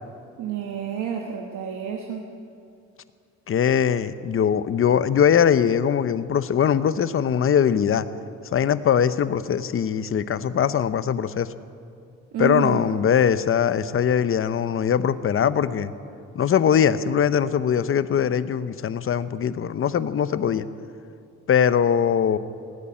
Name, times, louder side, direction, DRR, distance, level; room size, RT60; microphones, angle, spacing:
voice 1, 0.4-2.3 12.3-12.8, right 8 dB, 85° right, 2 dB, 1.2 m, -29 dB
voice 2, 3.5-8.1 8.5-11.5 12.4-15.9 16.3-20.7 21.5-22.4, left 8 dB, 45° left, 14 dB, 0.7 m, -21 dB
18.5 x 8.3 x 8.7 m, 2.4 s
cardioid pair, 90°, 30 cm